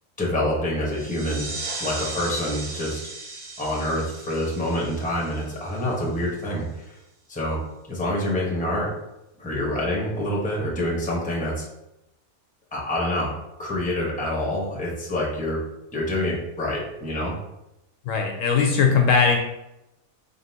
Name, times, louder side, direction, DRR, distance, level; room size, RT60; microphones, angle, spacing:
voice 1, 0.2-1.5 1.8-3.0 3.6-6.9 7.3-7.6 7.9-8.9 9.4-11.7 12.7-13.3 13.6-15.6 15.9-17.4, left 1 dB, 5° left, -4 dB, 0.8 m, -26 dB
sound 1, 0.9-6.2, right 3 dB, 55° right, 0.8 m, -37 dB
voice 2, 18.1-19.4, left 5 dB, 70° left, 3 dB, 0.9 m, -19 dB
3.8 x 3.8 x 2.7 m, 0.89 s
omnidirectional pair, 1.5 m